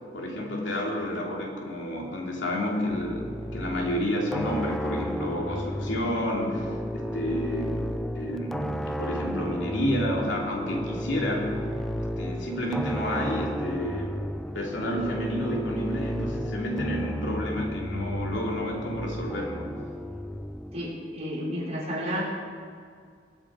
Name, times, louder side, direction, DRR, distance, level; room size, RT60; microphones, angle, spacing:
voice 1, 0.1-7.7 8.1-11.6 12.0-14.2 14.5-19.7, equal, 80° left, -1 dB, 3.0 m, -30 dB
sound 1, 2.9-20.9, equal, ahead, 0.4 m, -33 dB
voice 2, 20.7-22.2, equal, 35° right, -6 dB, 4.6 m, -31 dB
22.0 x 9.0 x 5.0 m, 2.1 s
head